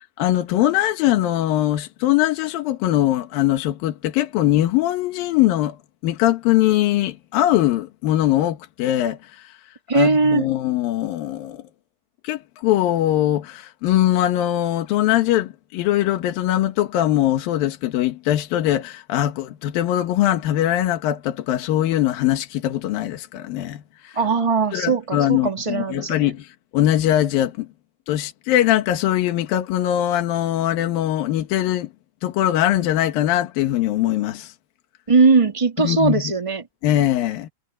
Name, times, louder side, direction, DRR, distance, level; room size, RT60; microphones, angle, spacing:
voice 1, 0.2-5.8 6.0-9.6 9.9-11.6 12.2-24.2 24.7-27.7 28.1-31.9 32.2-34.5 35.8-36.2 36.8-37.5, left 13 dB, 85° left, 3.1 m, -21 dB
voice 2, 9.9-10.4 24.2-26.3 35.1-36.7, right 4 dB, 10° right, 1.7 m, -19 dB
omnidirectional pair, 4.0 m